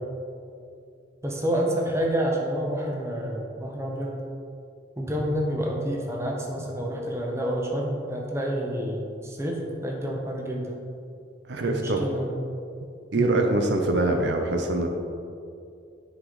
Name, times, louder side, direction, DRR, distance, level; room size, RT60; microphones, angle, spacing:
voice 1, 1.2-4.2 5.0-10.8 11.6-12.3 13.1-13.4, equal, 15° right, -1 dB, 1.0 m, -28 dB
voice 2, 11.5-12.0 13.1-14.9, right 2 dB, 65° right, 3 dB, 0.6 m, -24 dB
9.7 x 4.9 x 4.0 m, 2.5 s
head